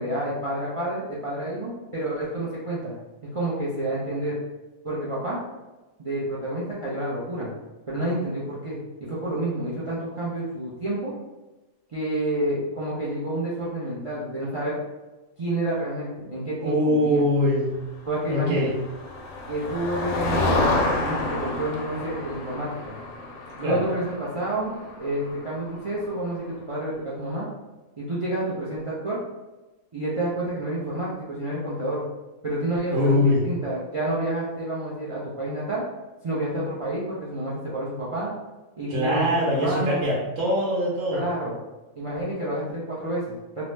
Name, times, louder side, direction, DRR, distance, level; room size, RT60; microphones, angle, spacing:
voice 1, 0.0-2.9 3.2-4.4 4.8-5.4 6.0-7.5 7.9-11.1 11.9-14.8 15.4-17.2 18.1-18.7 19.5-23.0 23.5-27.5 28.0-29.2 29.9-32.0 32.4-35.8 36.2-38.3 38.8-40.0 41.1-41.6 42.0-43.7, right 1 dB, 60° right, -7 dB, 0.3 m, -29 dB
voice 2, 16.6-17.8 18.3-18.7 23.6-23.8 32.9-33.4 38.9-41.3, left 1 dB, 75° right, -6 dB, 1.1 m, -22 dB
Motor vehicle (road), 18.4-26.2, left 2 dB, 75° left, 0.9 m, -29 dB
2.8 x 2.0 x 3.1 m, 1.1 s
omnidirectional pair, 1.4 m